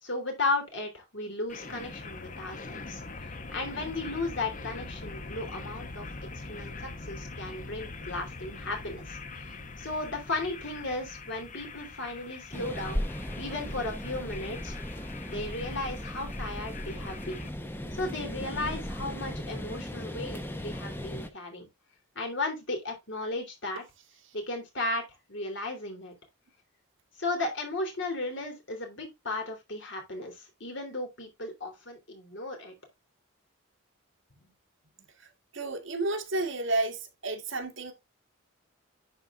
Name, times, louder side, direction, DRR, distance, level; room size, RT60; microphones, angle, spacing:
voice 1, 0.0-6.1 6.3-13.0 13.4-17.5 17.9-21.7 22.1-23.8 24.3-25.0 25.3-26.1 27.2-32.7 34.4-34.5, left 2 dB, 60° left, 3.2 m, -35 dB
sound 1, 1.5-17.5, left 3 dB, 40° left, 0.9 m, -43 dB
sound 2, 12.5-21.3, equal, 10° left, 0.8 m, -37 dB
voice 2, 35.5-37.9, right 2 dB, 65° right, 1.8 m, -31 dB
11.0 x 4.2 x 3.6 m
head